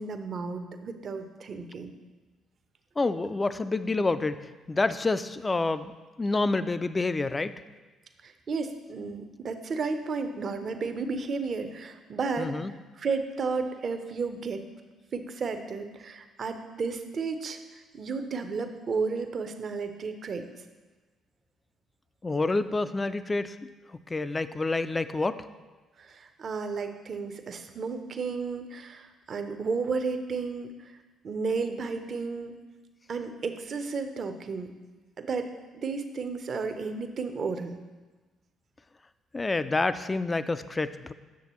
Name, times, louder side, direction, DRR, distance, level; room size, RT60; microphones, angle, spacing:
voice 1, 0.0-1.9 8.2-14.6 15.1-20.4 26.0-30.7 31.2-32.6 33.1-34.7 35.2-35.5 35.7-37.8, right 4 dB, 50° right, 8 dB, 0.7 m, -33 dB
voice 2, 3.0-5.9 6.2-7.5 12.4-12.7 22.2-23.6 24.1-25.4 39.3-41.1, left 3 dB, 25° left, 12 dB, 0.4 m, -28 dB
8.3 x 6.5 x 3.1 m, 1.3 s
hypercardioid pair, 50°, 0 cm